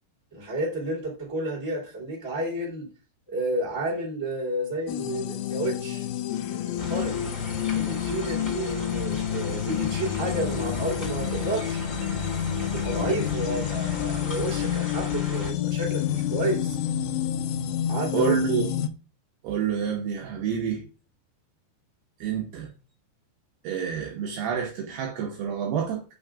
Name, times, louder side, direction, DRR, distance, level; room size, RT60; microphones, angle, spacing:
voice 1, 0.3-2.9 3.3-6.1 6.5-7.2 7.7-11.8 12.6-16.8 17.9-18.3, right 1 dB, 10° right, 1.9 m, -31 dB
sound 1, 4.9-18.9, left 10 dB, 85° left, 3.0 m, -29 dB
sound 2, 6.8-15.5, left 1 dB, 10° left, 1.7 m, -37 dB
voice 2, 18.1-18.7 19.4-20.9 22.2-22.7 23.6-26.0, right 8 dB, 75° right, 2.5 m, -28 dB
8.7 x 6.3 x 2.4 m
omnidirectional pair, 5.3 m